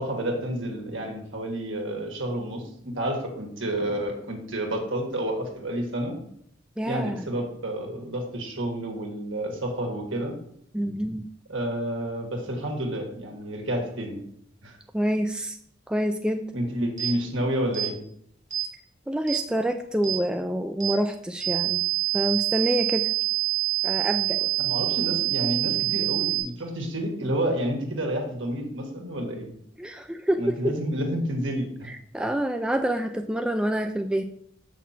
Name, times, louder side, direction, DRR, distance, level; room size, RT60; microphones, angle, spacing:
voice 1, 0.0-2.6 3.0-6.1 6.8-10.3 11.5-14.2 14.6-14.8 16.5-18.0 24.6-29.5 30.4-31.9, right 1 dB, 70° right, 1 dB, 1.9 m, -30 dB
voice 2, 6.8-7.2 10.7-11.3 14.9-15.6 15.9-16.4 19.1-21.8 22.1-23.1 23.8-24.5 29.8-30.6 32.1-34.2, right 1 dB, 5° right, 5 dB, 0.3 m, -27 dB
sound 1, 17.0-17.1 17.7-17.9 18.5-18.7 19.3-19.4 20.0-20.2 20.8-21.0 21.4-26.4, right 19 dB, 40° right, 2.5 m, -26 dB
7.1 x 6.1 x 4.4 m, 0.70 s
head